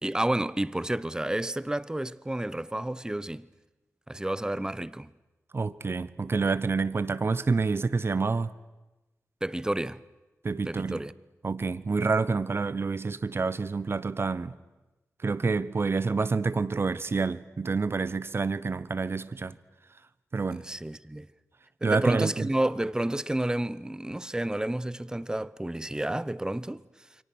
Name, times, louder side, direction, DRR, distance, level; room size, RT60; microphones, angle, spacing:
voice 1, 0.0-3.5 4.1-5.1 9.4-10.0 10.7-11.1 20.5-21.3 21.8-26.8, right 1 dB, 15° right, 0.8 m, -30 dB
voice 2, 5.5-8.5 10.4-11.0 11.4-14.6 15.2-19.5 20.3-20.6 21.8-22.5, right 4 dB, 45° right, 1.0 m, -28 dB
28.5 x 23.5 x 6.3 m
cardioid pair, 60°, 6 cm